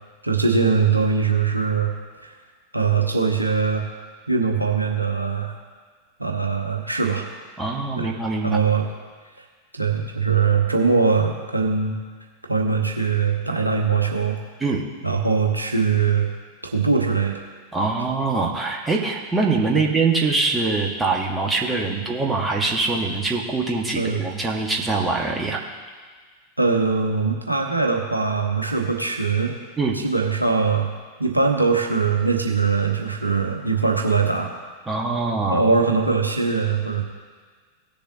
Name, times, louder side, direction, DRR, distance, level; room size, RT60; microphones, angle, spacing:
voice 1, 0.2-1.9 2.2-2.3 2.7-3.9 4.3-5.5 6.2-7.3 8.0-8.1 8.4-8.9 9.7-12.0 12.5-14.4 15.0-16.3 16.7-17.4 23.9-24.2 26.6-29.5 30.0-30.9 31.2-34.5 35.5-37.0, right 5 dB, 85° right, 2 dB, 1.1 m, -21 dB
voice 2, 7.6-8.6 14.6-14.8 17.7-25.6 29.8-30.0 34.9-35.6, right 3 dB, 15° right, 0 dB, 1.5 m, -23 dB
18.0 x 6.9 x 2.8 m, 1.5 s
figure-of-eight pair, 90°, 0 cm